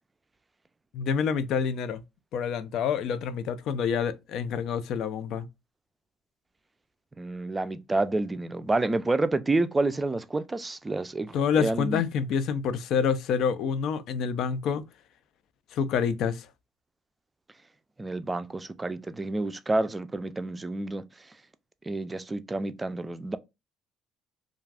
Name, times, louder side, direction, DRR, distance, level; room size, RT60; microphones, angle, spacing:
voice 1, 0.9-2.0 2.3-5.5 11.3-14.8 15.7-16.5, left 7 dB, 70° left, 0.4 m, -27 dB
voice 2, 7.2-12.0 18.0-21.0 21.9-23.4, right 2 dB, 20° right, 0.4 m, -29 dB
2.4 x 2.3 x 3.3 m
cardioid pair, 95°, 0 cm